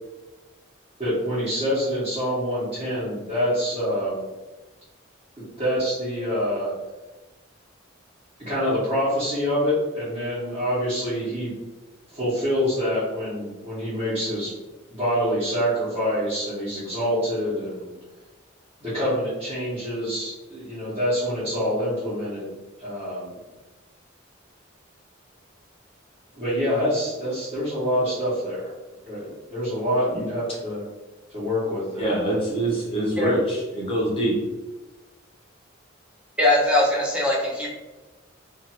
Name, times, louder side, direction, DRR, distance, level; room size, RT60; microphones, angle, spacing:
voice 1, 1.0-4.3 5.4-6.7 8.4-11.5 12.1-14.5 14.9-17.9 18.8-22.5 22.8-23.3 26.3-28.7 29.0-30.8 31.3-32.2, equal, 30° right, -14 dB, 1.0 m, -26 dB
voice 2, 32.0-34.4, right 1 dB, 25° left, -4 dB, 0.7 m, -24 dB
voice 3, 36.4-37.7, left 1 dB, 5° right, -5 dB, 0.6 m, -21 dB
2.5 x 2.5 x 2.8 m, 1.1 s
head